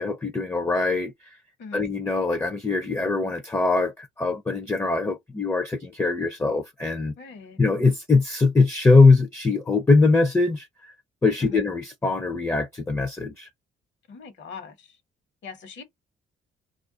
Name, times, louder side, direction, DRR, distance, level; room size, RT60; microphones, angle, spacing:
voice 1, 0.0-1.4 1.7-7.1 7.6-10.9 11.2-13.5, left 3 dB, 10° left, 0.4 m, -22 dB
voice 2, 7.2-7.6 11.4-11.6 14.1-15.0 15.4-15.8, left 5 dB, 65° left, 1.1 m, -41 dB
2.4 x 2.2 x 3.6 m
cardioid pair, 90°, 20 cm